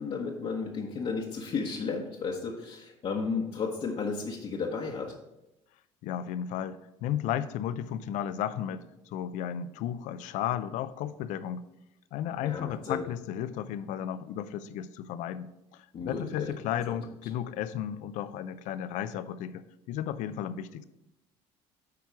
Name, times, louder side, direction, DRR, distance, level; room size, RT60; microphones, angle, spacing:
voice 1, 0.0-5.2 12.4-13.1 15.9-16.5 16.9-17.0, left 5 dB, 45° left, -2 dB, 1.0 m, -33 dB
voice 2, 6.0-11.6 12.1-20.8, left 10 dB, 70° left, 14 dB, 0.5 m, -34 dB
8.5 x 4.6 x 4.7 m, 0.90 s
supercardioid pair, 90°, 13 cm